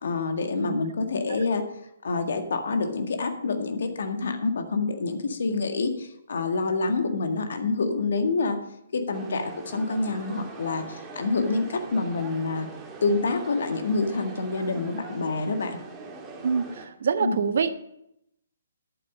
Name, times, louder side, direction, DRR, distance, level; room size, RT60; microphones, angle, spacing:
voice 1, 0.0-1.6 2.0-8.6 8.9-12.7 13.0-15.8 17.2-17.4, left 3 dB, 60° left, 6 dB, 1.9 m, -27 dB
sound 1, 9.1-16.9, right 4 dB, 20° right, 1.9 m, -42 dB
voice 2, 16.4-17.8, right 6 dB, 55° right, 12 dB, 0.8 m, -26 dB
11.0 x 8.6 x 5.4 m, 0.77 s
figure-of-eight pair, 130°, 0 cm